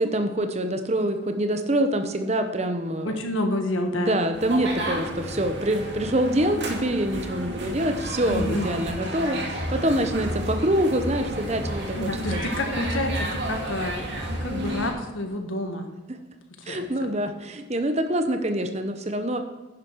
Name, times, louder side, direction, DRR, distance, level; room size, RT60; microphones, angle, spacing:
voice 1, 0.0-3.2 3.9-12.5 16.7-19.4, right 1 dB, 35° right, 7 dB, 1.0 m, -25 dB
voice 2, 3.0-4.2 8.3-8.7 11.9-14.1 14.4-15.9 16.6-16.9, left 1 dB, 80° left, 4 dB, 1.7 m, -28 dB
sound 1, 4.3-14.9, right 1 dB, 60° right, 2.3 m, -31 dB
10.5 x 10.0 x 4.7 m, 1.1 s
head